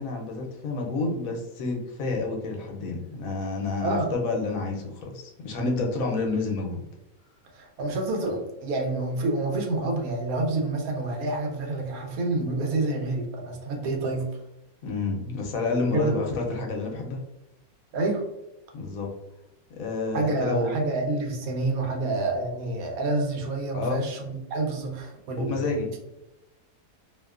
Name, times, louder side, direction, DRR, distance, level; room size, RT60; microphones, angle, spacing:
voice 1, 0.0-6.8 14.8-17.2 18.7-19.1 19.7-20.8 23.7-24.1 25.4-25.9, left 3 dB, 75° left, 0 dB, 1.0 m, -29 dB
voice 2, 7.5-14.2 15.9-16.2 17.9-18.2 20.1-25.9, right 2 dB, 80° right, 2 dB, 1.1 m, -28 dB
2.8 x 2.1 x 2.3 m, 0.92 s
omnidirectional pair, 1.5 m